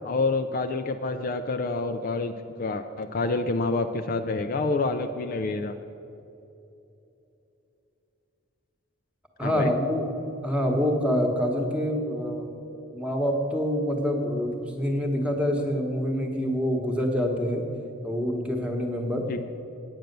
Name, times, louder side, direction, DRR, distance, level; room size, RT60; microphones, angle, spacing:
voice 1, 0.0-2.3 2.6-5.7 9.4-9.7 19.3-19.4, left 3 dB, 40° left, 7 dB, 0.4 m, -27 dB
voice 2, 9.4-10.1 10.4-12.5 12.9-17.6 18.0-19.3, equal, 5° right, 2 dB, 1.1 m, -26 dB
9.0 x 8.8 x 6.6 m, 2.9 s
head